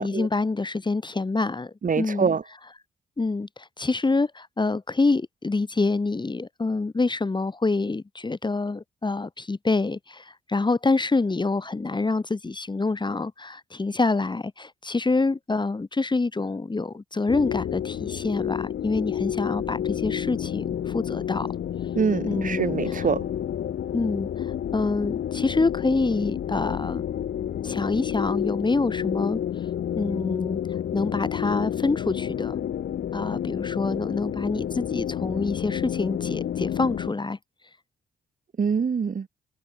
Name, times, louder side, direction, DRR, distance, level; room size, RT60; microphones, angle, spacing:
voice 1, 0.0-2.3 3.2-21.5 22.2-22.8 23.9-27.0 27.6-29.4 29.9-30.6 30.9-32.6 33.1-37.4, left 3 dB, 20° left, 1.3 m, -26 dB
voice 2, 1.8-2.4 21.9-23.2 38.6-39.3, right 6 dB, 40° right, 1.6 m, -24 dB
sound 1, 17.3-37.1, left 10 dB, 60° left, 1.7 m, -30 dB
hypercardioid pair, 40°, 21 cm